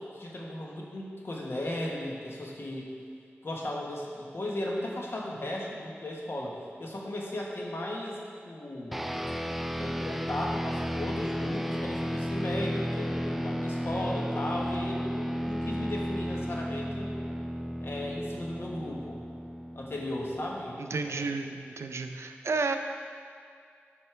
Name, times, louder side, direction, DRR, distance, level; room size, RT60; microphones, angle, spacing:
voice 1, 0.0-2.9 3.4-8.2 8.4-9.0 9.8-17.1 17.8-19.2 19.7-21.3, left 1 dB, 60° left, -2 dB, 1.4 m, -36 dB
sound 1, 8.9-20.6, equal, 5° right, 0.3 m, -33 dB
voice 2, 20.8-22.8, right 4 dB, 85° right, 6 dB, 0.5 m, -32 dB
12.0 x 5.3 x 3.4 m, 2.2 s
wide cardioid pair, 65°, 5 cm